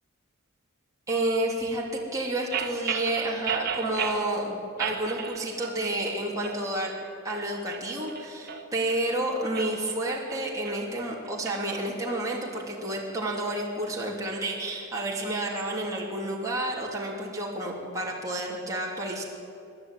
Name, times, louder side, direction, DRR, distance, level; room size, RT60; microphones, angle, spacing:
voice 1, 1.1-1.8 2.1-6.9 7.2-19.2, right 1 dB, 15° right, -4 dB, 3.3 m, -30 dB
sound 1, 2.5-4.3 4.8-5.8 6.0-6.6 7.1-9.0 9.4-11.6, right 7 dB, 45° right, 2.1 m, -34 dB
27.0 x 12.0 x 9.3 m, 2.6 s
head